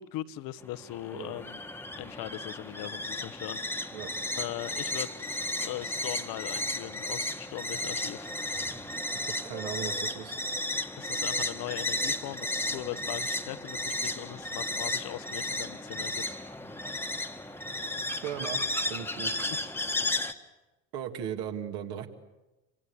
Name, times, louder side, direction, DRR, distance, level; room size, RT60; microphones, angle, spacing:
voice 1, 0.0-1.6 2.0-3.9 4.4-5.1 5.6-8.3 11.0-16.2 19.4-19.7, left 14 dB, 50° left, 13 dB, 1.2 m, -39 dB
sound 1, 0.6-20.3, left 1 dB, 5° left, 1.7 m, -34 dB
voice 2, 9.1-10.4 18.2-18.6 18.9-19.4 20.9-22.1, right 9 dB, 55° right, 5 dB, 2.7 m, -37 dB
28.0 x 26.0 x 7.2 m, 1.1 s
figure-of-eight pair, 60°, 44 cm